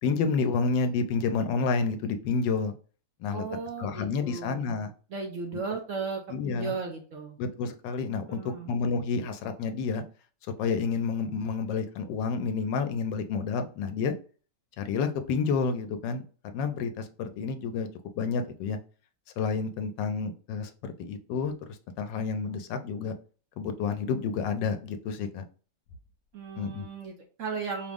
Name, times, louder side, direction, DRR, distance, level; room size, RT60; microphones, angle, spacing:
voice 1, 0.0-2.7 3.2-3.4 3.8-4.9 6.3-6.7 7.4-10.0 10.6-14.1 14.8-16.2 16.5-17.9 18.2-18.8 19.4-21.5 22.0-23.1 23.6-25.4 26.6-26.9, left 5 dB, 90° left, 8 dB, 1.3 m, -29 dB
voice 2, 3.3-4.7 5.1-7.4 8.3-8.7 26.3-27.9, right 4 dB, 60° right, 1 dB, 0.9 m, -36 dB
4.9 x 2.0 x 3.5 m, 0.39 s
omnidirectional pair, 1.9 m